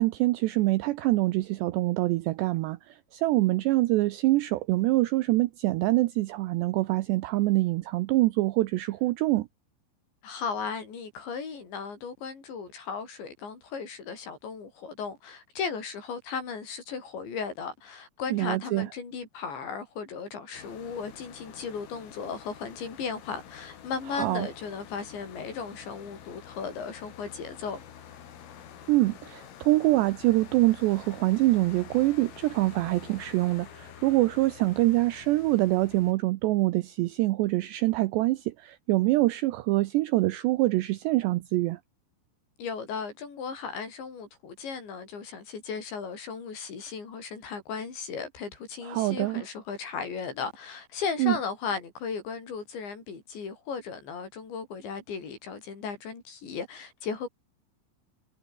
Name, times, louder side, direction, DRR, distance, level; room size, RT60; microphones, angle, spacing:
voice 1, 0.0-9.5 18.3-18.9 24.1-24.5 28.9-41.8 48.8-49.4 51.2-51.4, right 19 dB, 85° right, 2.5 m, -25 dB
voice 2, 10.2-27.8 42.6-57.3, left 5 dB, 60° left, 8.1 m, -36 dB
sound 1, 20.5-36.1, left 9 dB, 90° left, 6.2 m, -48 dB
omnidirectional pair, 5.8 m